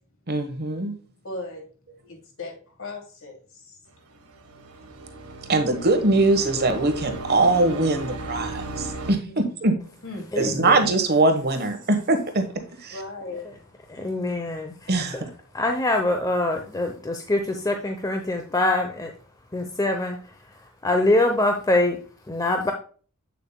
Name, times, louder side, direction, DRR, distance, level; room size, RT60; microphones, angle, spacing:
voice 1, 0.3-1.0 5.5-9.8 10.3-13.0 14.9-15.3, right 2 dB, 45° right, 1.2 m, -22 dB
voice 2, 1.2-1.7 2.1-3.8 9.2-9.4 10.0-10.3 12.9-13.7, left 2 dB, 65° left, 2.6 m, -37 dB
sound 1, 4.1-9.1, right 2 dB, 80° right, 1.6 m, -36 dB
voice 3, 10.3-10.9 13.9-15.2 15.5-19.1 19.5-20.2 20.8-22.0 22.3-22.7, left 2 dB, 15° left, 0.7 m, -24 dB
8.2 x 6.9 x 2.2 m
head